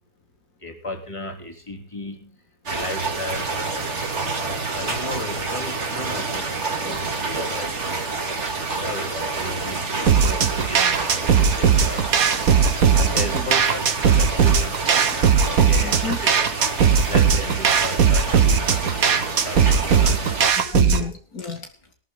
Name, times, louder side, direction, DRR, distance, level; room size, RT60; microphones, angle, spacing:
voice 1, 0.6-2.4 2.7-3.5 4.7-8.0 8.4-12.2 13.0-16.4 17.1-20.3 21.0-21.1, left 2 dB, 20° left, 2 dB, 3.5 m, -35 dB
sound 1, 2.7-20.5, right 3 dB, 45° right, 2.4 m, -28 dB
voice 2, 4.4-4.8 13.1-13.5 15.8-16.2 20.6-21.9, left 4 dB, 65° left, 4 dB, 2.6 m, -32 dB
sound 2, 10.1-21.1, right 7 dB, 65° right, 1.7 m, -18 dB
18.5 x 13.5 x 4.0 m, 0.42 s
omnidirectional pair, 1.7 m